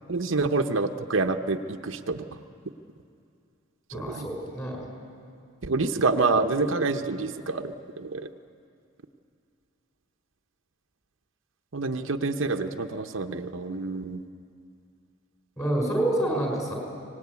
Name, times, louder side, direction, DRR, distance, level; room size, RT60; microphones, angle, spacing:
voice 1, 0.1-2.3 3.9-4.3 5.6-8.3 11.7-14.2, right 3 dB, 70° right, 5 dB, 0.8 m, -27 dB
voice 2, 3.9-4.9 15.6-16.7, right 1 dB, 15° left, 0 dB, 5.3 m, -27 dB
24.0 x 19.5 x 9.5 m, 2.4 s
head